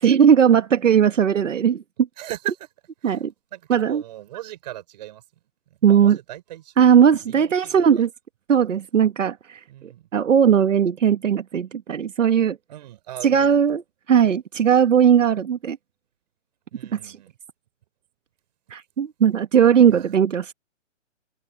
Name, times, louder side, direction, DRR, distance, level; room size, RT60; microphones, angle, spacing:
voice 1, 0.0-1.8 3.0-3.3 3.7-4.0 5.8-6.2 6.8-8.1 8.5-9.6 10.1-12.6 13.2-13.8 14.1-15.8 16.9-17.2 18.7-20.5, right 8 dB, 75° right, 1.6 m, -18 dB
voice 2, 2.2-2.7 3.0-3.2 3.5-5.2 5.9-6.7 7.3-8.0 9.7-10.1 12.7-13.6 16.7-17.3 19.9-20.1, right 14 dB, 35° right, 4.7 m, -38 dB
open air
hypercardioid pair, 165°, 37 cm